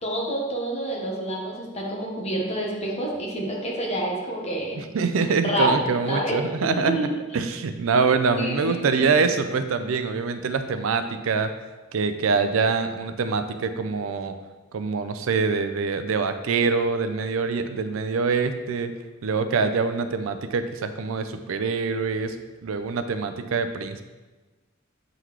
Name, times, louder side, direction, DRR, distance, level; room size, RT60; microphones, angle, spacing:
voice 1, 0.0-4.8 5.4-6.3 6.7-7.1 8.4-9.1, right 1 dB, 30° left, -2 dB, 1.1 m, -28 dB
voice 2, 4.8-7.1 7.3-11.5 11.9-14.4 14.7-18.9 19.2-22.4 22.6-24.0, right 4 dB, 85° right, 9 dB, 0.4 m, -24 dB
8.0 x 3.9 x 3.1 m, 1.2 s
head